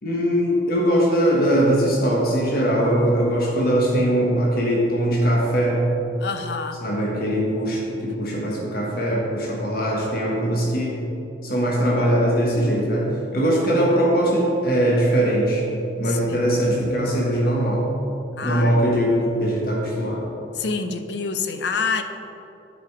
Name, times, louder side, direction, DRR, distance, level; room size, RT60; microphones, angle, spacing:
voice 1, 0.0-5.8 6.8-11.0 11.4-15.7 16.0-17.9 18.4-20.2, right 1 dB, 55° left, -3 dB, 1.4 m, -21 dB
voice 2, 6.2-6.8 16.0-16.5 18.4-18.8 20.5-22.0, left 5 dB, 70° left, 7 dB, 0.6 m, -27 dB
10.5 x 5.2 x 4.8 m, 3.0 s
head